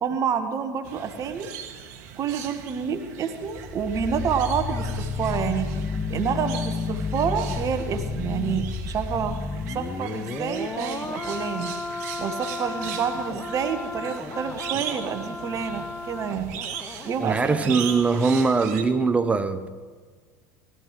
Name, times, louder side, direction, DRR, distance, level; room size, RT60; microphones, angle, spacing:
voice 1, 0.0-1.5 2.2-9.3 9.7-11.7 12.2-16.6 17.0-17.8, right 7 dB, 35° right, 1.3 m, -28 dB
sound 1, 0.8-18.8, right 8 dB, 55° right, 1.5 m, -39 dB
sound 2, 3.4-18.4 18.7-18.9, left 4 dB, 15° left, 0.8 m, -32 dB
voice 2, 17.2-19.7, right 4 dB, 15° right, 0.8 m, -22 dB
19.5 x 12.0 x 3.2 m
figure-of-eight pair, 75°, 10 cm